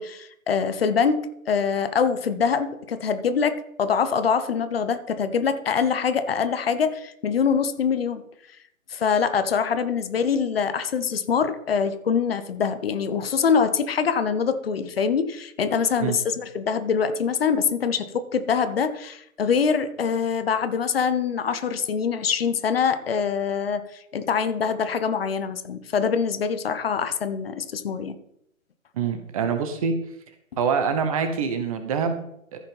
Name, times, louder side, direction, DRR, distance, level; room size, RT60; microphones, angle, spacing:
voice 1, 0.0-8.2 8.9-28.2, left 6 dB, 45° left, 11 dB, 1.1 m, -24 dB
voice 2, 28.9-29.9 30.6-32.6, right 6 dB, 25° right, 8 dB, 1.1 m, -25 dB
14.5 x 5.5 x 5.4 m, 0.74 s
figure-of-eight pair, 145°, 41 cm